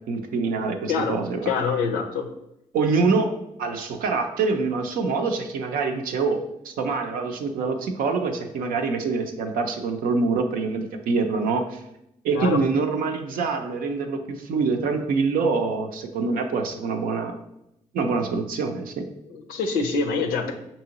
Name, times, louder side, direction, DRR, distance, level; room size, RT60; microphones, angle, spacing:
voice 1, 0.1-1.4 2.7-3.3 3.6-11.8 12.2-17.4 17.9-19.1, right 4 dB, 80° right, 5 dB, 0.5 m, -25 dB
voice 2, 1.5-2.3 12.3-12.6 19.3-20.5, left 5 dB, 90° left, 4 dB, 0.5 m, -25 dB
5.4 x 2.7 x 2.8 m, 0.83 s
supercardioid pair, 45°, 14 cm